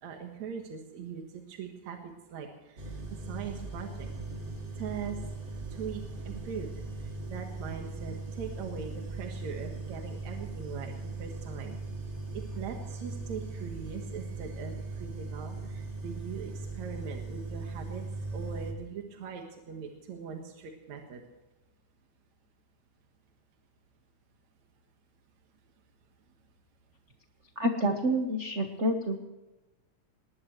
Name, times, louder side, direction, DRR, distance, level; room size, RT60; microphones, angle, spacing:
voice 1, 0.0-4.1 4.8-5.2 5.7-6.7 7.0-11.8 12.3-18.0 18.3-21.2, right 7 dB, 75° right, 2 dB, 2.8 m, -41 dB
sound 1, 2.8-18.7, right 3 dB, 30° right, 1.7 m, -39 dB
voice 2, 27.6-29.2, equal, 55° right, 4 dB, 0.7 m, -28 dB
20.5 x 19.5 x 3.2 m, 1.0 s
omnidirectional pair, 3.3 m